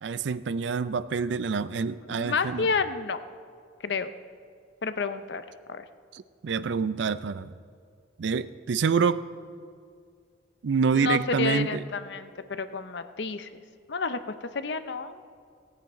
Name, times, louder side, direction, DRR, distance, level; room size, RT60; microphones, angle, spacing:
voice 1, 0.0-2.7 6.1-7.5 8.2-9.3 10.6-11.8, right 5 dB, 70° right, 15 dB, 0.4 m, -27 dB
voice 2, 2.1-3.2 3.8-4.1 4.8-5.8 11.0-13.6 13.9-14.2 14.5-15.2, left 4 dB, 65° left, 11 dB, 0.6 m, -30 dB
17.0 x 9.5 x 4.2 m, 2.2 s
head